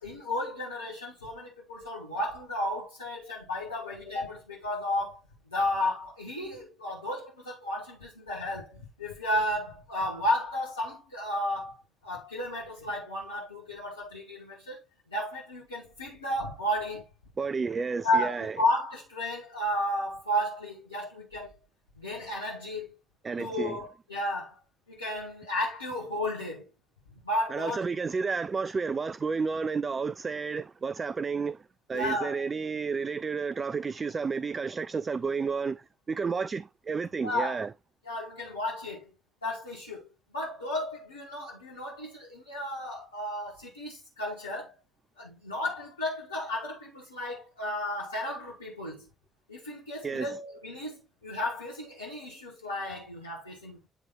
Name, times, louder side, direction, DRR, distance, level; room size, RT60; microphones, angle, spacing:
voice 1, 0.0-5.2 5.5-11.7 12.0-14.8 15.1-17.0 18.0-21.5 22.0-23.0 23.4-24.5 24.9-26.6 27.2-27.8 31.9-32.3 37.2-37.6 38.1-39.1 39.4-40.1 40.3-44.7 45.2-49.1 49.5-53.8, left 1 dB, 90° left, 1.3 m, -33 dB
voice 2, 17.4-18.6 23.2-23.8 27.5-37.7 50.0-50.4, right 5 dB, 35° right, 0.3 m, -31 dB
9.7 x 3.3 x 3.7 m
figure-of-eight pair, 45°, 0 cm